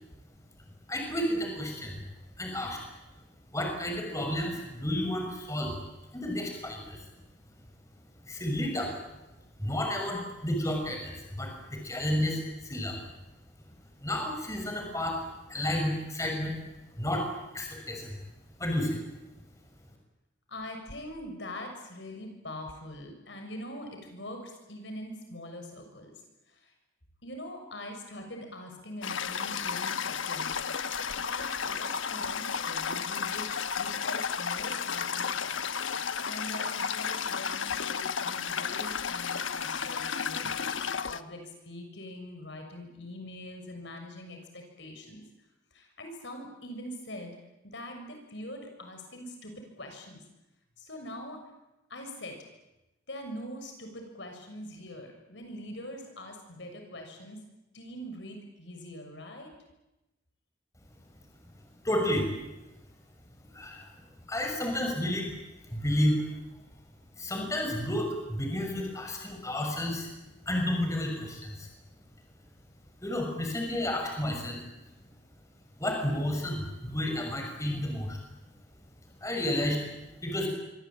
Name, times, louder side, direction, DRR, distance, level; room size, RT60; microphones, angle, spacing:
voice 1, 0.9-2.0 2.4-2.8 3.5-5.7 6.1-7.0 8.2-8.9 9.6-13.0 14.0-15.2 15.5-16.5 17.0-17.3 17.5-18.2 18.6-19.0 61.8-62.3 63.5-63.9 64.3-65.4 65.7-66.3 66.5-66.6 67.1-70.1 70.5-71.7 73.0-74.6 75.8-78.2 79.2-79.9 80.2-80.5, left 1 dB, 15° left, 2 dB, 6.4 m, -31 dB
voice 2, 20.5-26.1 26.5-26.7 27.2-30.5 30.8-35.6 35.9-45.3 45.7-47.4 47.6-50.2 50.8-51.4 51.9-52.4 53.1-57.4 57.7-59.5, left 1 dB, 65° left, 4 dB, 6.7 m, -43 dB
Toilet flush, 29.0-41.2, left 6 dB, 80° left, 1.2 m, -33 dB
27.0 x 24.5 x 8.9 m, 0.97 s
head